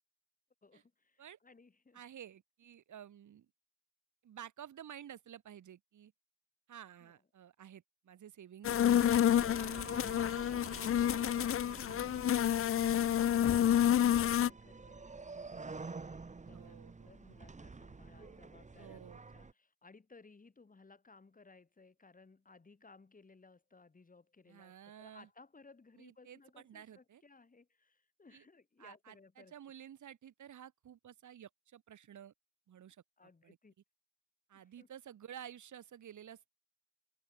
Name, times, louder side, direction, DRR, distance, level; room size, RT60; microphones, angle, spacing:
voice 1, 0.6-2.0 7.0-7.2 9.4-29.5 33.2-33.7 34.5-34.9, left 4 dB, 25° left, 7.7 m, -61 dB
voice 2, 1.9-3.5 4.2-6.1 6.7-9.7 16.5-17.1 18.1-18.4 18.8-19.2 24.5-25.3 26.0-26.4 26.6-27.2 28.3-28.4 28.8-32.3 32.7-33.0 33.4-33.6 34.5-36.6, right 10 dB, 65° right, 8.0 m, -52 dB
sound 1, 8.6-14.5, left 10 dB, 45° left, 0.6 m, -29 dB
sound 2, 9.4-19.5, right 4 dB, 20° right, 2.1 m, -49 dB
cardioid pair, 100°, 32 cm